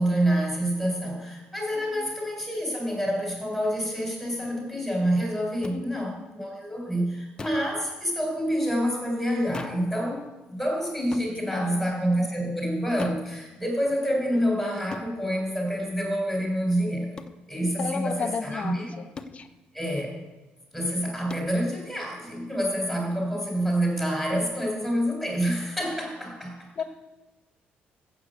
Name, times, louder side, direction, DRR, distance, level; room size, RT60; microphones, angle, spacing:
voice 1, 0.0-17.2 17.5-18.9 19.7-20.2 20.7-26.7, equal, 5° right, -1 dB, 5.0 m, -27 dB
voice 2, 1.7-2.1 5.7-6.1 11.4-11.9 17.8-19.5 26.8-26.9, left 5 dB, 40° left, 9 dB, 1.1 m, -34 dB
sound 1, 5.6-5.8 7.4-7.7 9.5-9.9 11.1-11.3 13.0-13.3 14.9-15.1 17.2-17.4 19.1-19.4 21.3-21.5, left 3 dB, 20° left, 0.8 m, -38 dB
15.0 x 7.1 x 8.3 m, 1.1 s
cardioid pair, 140°, 4 cm